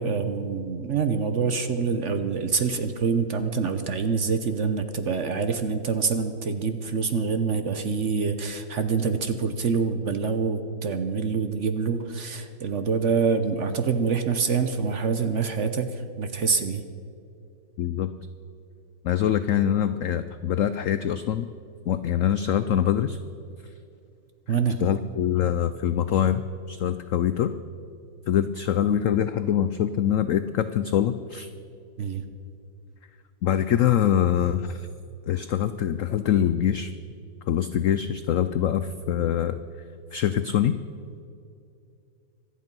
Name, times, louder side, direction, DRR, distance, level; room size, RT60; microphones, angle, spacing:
voice 1, 0.0-16.8 24.5-24.8 32.0-32.2, right 5 dB, 55° right, 9 dB, 0.9 m, -26 dB
voice 2, 17.8-18.1 19.0-21.5 21.9-23.2 24.8-26.4 26.7-27.5 28.3-31.5 33.4-34.9 35.3-36.9 37.5-39.6 40.1-40.8, left 10 dB, 80° left, 12 dB, 0.7 m, -24 dB
25.0 x 8.7 x 5.4 m, 2.6 s
omnidirectional pair, 1.9 m